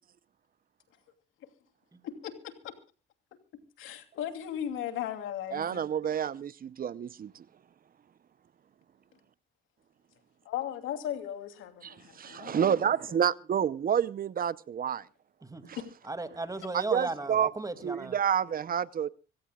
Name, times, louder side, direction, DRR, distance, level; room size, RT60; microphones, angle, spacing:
voice 1, 2.0-2.7 3.8-5.8 10.4-12.8, left 10 dB, 90° left, 2.8 m, -37 dB
voice 2, 5.5-7.4 11.8-15.0 15.7-15.8 16.7-17.5 17.8-19.1, right 8 dB, 45° right, 0.7 m, -29 dB
voice 3, 16.0-18.2, right 2 dB, 15° right, 2.3 m, -35 dB
25.5 x 16.5 x 2.3 m
cardioid pair, 90°, 20 cm